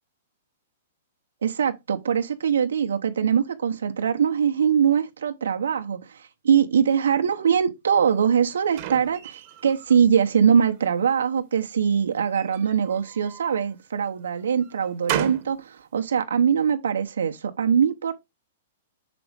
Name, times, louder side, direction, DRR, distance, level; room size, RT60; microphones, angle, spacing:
voice 1, 1.4-18.1, right 7 dB, 90° right, 0.8 m, -22 dB
sound 1, 8.1-10.0 10.5-11.2 12.2-13.7 14.2-15.6, right 12 dB, 45° right, 1.0 m, -35 dB
6.0 x 5.0 x 3.4 m
hypercardioid pair, 140°, 0 cm